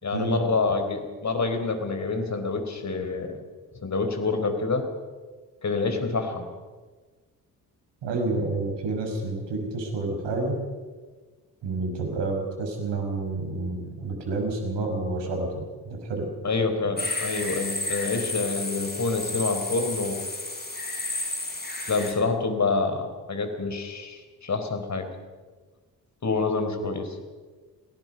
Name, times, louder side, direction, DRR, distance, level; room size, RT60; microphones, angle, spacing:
voice 1, 0.0-3.4 3.8-4.8 5.6-6.5 16.4-20.2 21.9-25.1 26.2-27.2, left 3 dB, 35° left, 7 dB, 4.2 m, -27 dB
voice 2, 8.0-10.6 11.6-16.3, right 2 dB, 60° right, 3 dB, 5.7 m, -29 dB
sound 1, 17.0-22.1, left 2 dB, 20° left, 5.8 m, -32 dB
27.0 x 18.0 x 5.4 m, 1.4 s
figure-of-eight pair, 45°, 48 cm